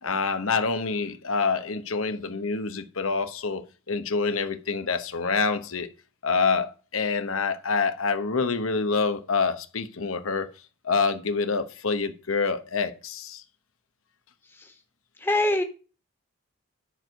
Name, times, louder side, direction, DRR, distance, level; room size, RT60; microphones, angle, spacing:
voice 1, 0.0-5.9 6.2-10.5 10.8-13.4, left 4 dB, 85° left, 1.0 m, -26 dB
voice 2, 15.2-15.6, left 1 dB, 10° left, 1.4 m, -23 dB
10.5 x 4.6 x 6.5 m
head